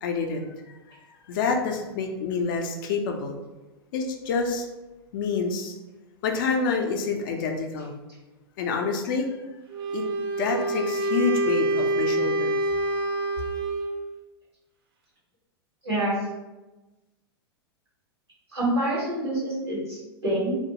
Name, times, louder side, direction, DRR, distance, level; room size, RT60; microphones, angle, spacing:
voice 1, 0.0-0.5 0.9-1.0 1.3-3.4 3.9-4.7 5.1-5.7 6.2-8.0 8.6-9.3 9.9-10.0 10.3-12.6, left 5 dB, 55° left, 3 dB, 0.4 m, -27 dB
Wind instrument woodwind instrument, 9.7-14.0, right 2 dB, 65° right, 0.5 m, -26 dB
voice 2, 15.8-16.2 18.5-20.6, right 1 dB, 85° right, -8 dB, 0.9 m, -26 dB
2.2 x 2.1 x 2.8 m, 1.1 s
figure-of-eight pair, 95°, 13 cm